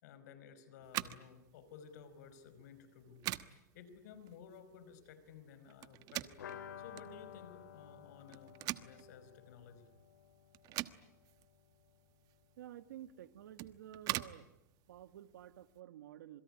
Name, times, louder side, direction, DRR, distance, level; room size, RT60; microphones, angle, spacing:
voice 1, 0.0-9.9, left 6 dB, 70° left, 12 dB, 4.9 m, -56 dB
sound 1, 0.8-15.8, right 16 dB, 40° right, 1.2 m, -46 dB
sound 2, 6.4-12.0 12.2-12.3 12.6-12.7, left 9 dB, 90° left, 3.1 m, -53 dB
voice 2, 12.6-14.6 14.9-16.4, right 11 dB, 85° right, 12 dB, 1.7 m, -52 dB
27.5 x 22.0 x 9.9 m, 0.93 s
supercardioid pair, 140°, 10 cm